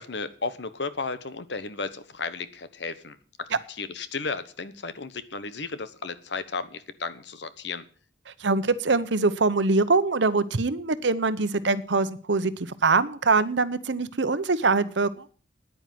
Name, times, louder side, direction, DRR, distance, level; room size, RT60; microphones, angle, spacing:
voice 1, 0.0-7.8, left 4 dB, 70° left, 13 dB, 1.1 m, -34 dB
voice 2, 8.4-15.2, right 3 dB, 75° right, 13 dB, 0.9 m, -23 dB
9.9 x 9.3 x 7.7 m, 0.43 s
head